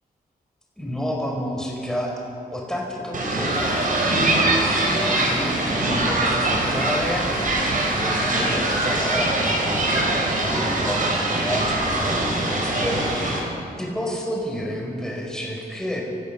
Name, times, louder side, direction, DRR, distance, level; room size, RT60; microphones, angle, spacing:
voice 1, 0.8-2.2 2.5-7.3 7.8-13.1 13.8-16.0, equal, 5° left, -2 dB, 5.3 m, -30 dB
sound 1, 3.1-13.4, right 2 dB, 60° right, 4.5 m, -22 dB
26.5 x 15.0 x 7.0 m, 2.5 s
wide cardioid pair, 150°, 16 cm